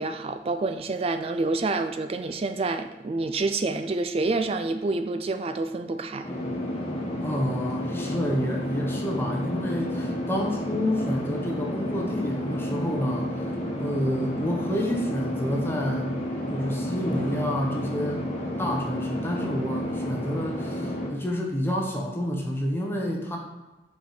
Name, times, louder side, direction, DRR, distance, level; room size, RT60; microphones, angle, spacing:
voice 1, 0.0-6.3, right 3 dB, 35° right, 8 dB, 0.4 m, -28 dB
sound 1, 6.2-21.1, left 1 dB, 35° left, 1.4 m, -31 dB
voice 2, 7.2-13.3 13.8-16.2 16.5-18.3 18.6-23.4, equal, 15° left, 0 dB, 0.9 m, -29 dB
5.1 x 4.6 x 5.1 m, 1.1 s
head